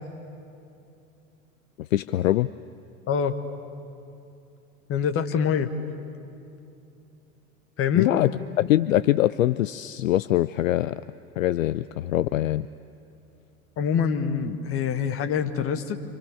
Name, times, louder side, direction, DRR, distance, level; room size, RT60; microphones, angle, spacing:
voice 1, 1.8-2.5 7.9-8.3 8.6-11.0 11.4-12.7, left 14 dB, 65° left, 15 dB, 0.5 m, -23 dB
voice 2, 4.9-5.7 7.8-8.1 13.8-16.0, left 7 dB, 30° left, 8 dB, 1.5 m, -25 dB
29.5 x 25.5 x 7.0 m, 2.7 s
figure-of-eight pair, 80°, 43 cm